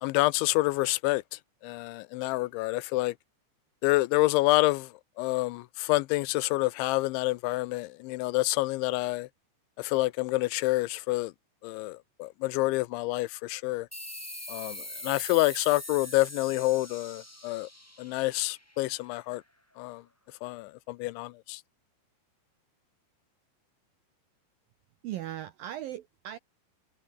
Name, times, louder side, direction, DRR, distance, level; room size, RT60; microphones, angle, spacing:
voice 1, 0.0-3.2 3.8-9.3 9.8-11.3 11.6-13.9 14.5-17.7 18.0-19.4 19.8-20.0 20.4-21.6, left 20 dB, 85° left, 3.0 m, -28 dB
sound 1, 13.9-19.1, left 1 dB, 15° left, 0.5 m, -42 dB
voice 2, 25.0-26.4, right 12 dB, 85° right, 2.0 m, -38 dB
omnidirectional pair, 5.3 m